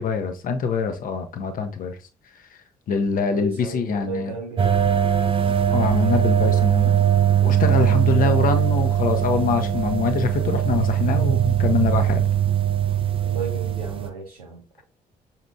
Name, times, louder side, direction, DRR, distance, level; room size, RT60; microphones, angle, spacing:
voice 1, 0.0-2.0 2.9-4.4 5.7-7.0 7.4-12.2, left 5 dB, 45° left, 0.8 m, -24 dB
voice 2, 3.3-4.8 13.2-14.8, right 3 dB, 85° right, 0.5 m, -33 dB
sound 1, 4.6-14.1, right 10 dB, 30° right, 0.5 m, -20 dB
6.0 x 2.8 x 2.3 m
figure-of-eight pair, 45°, 19 cm